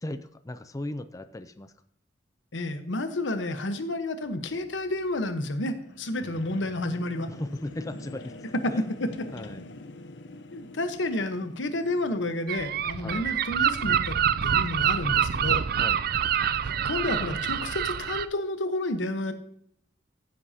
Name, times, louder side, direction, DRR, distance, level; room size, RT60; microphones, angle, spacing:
voice 1, 0.0-1.7 6.2-6.4 7.3-8.3 8.7-8.8 9.3-9.6 13.0-13.2 15.8-16.0, left 1 dB, 20° left, 10 dB, 0.4 m, -36 dB
voice 2, 2.5-7.3 8.6-9.1 10.5-15.6 16.6-19.3, left 1 dB, 90° left, 9 dB, 1.1 m, -30 dB
sound 1, 4.2-14.0, left 2 dB, 70° left, 0.7 m, -47 dB
Gull seagull, 12.5-18.3, right 8 dB, 55° right, 0.4 m, -26 dB
15.0 x 7.8 x 2.8 m, 0.70 s
head